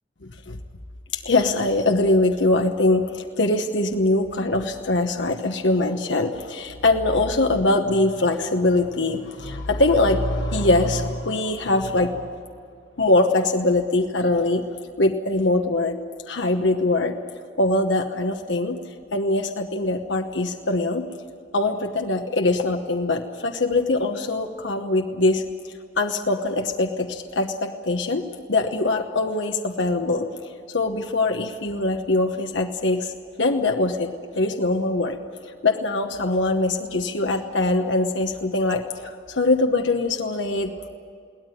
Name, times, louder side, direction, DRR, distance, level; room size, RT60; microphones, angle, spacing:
voice 1, 0.2-0.6 1.1-12.3 13.0-14.6 15.0-16.0 16.3-17.2 17.6-18.8 19.1-21.0 21.5-30.3 30.7-33.1 33.4-35.2 35.6-40.9, left 2 dB, 80° left, 4 dB, 1.1 m, -22 dB
22.0 x 17.5 x 9.1 m, 2.3 s
head